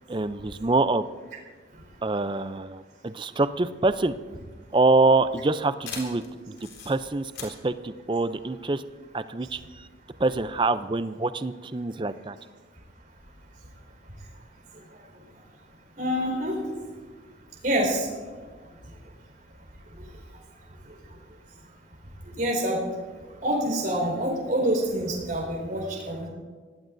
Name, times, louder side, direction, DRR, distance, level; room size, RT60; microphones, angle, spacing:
voice 1, 0.1-1.0 2.0-4.1 4.7-8.8 9.1-9.9 10.2-12.4, right 3 dB, 25° right, 12 dB, 0.5 m, -25 dB
sound 1, 4.0-9.1, left 5 dB, 90° left, 4.2 m, -43 dB
voice 2, 16.0-16.6 17.6-18.1 22.4-22.8 23.4-26.3, right 1 dB, 45° right, -1 dB, 4.6 m, -26 dB
24.5 x 18.0 x 2.7 m, 1.4 s
head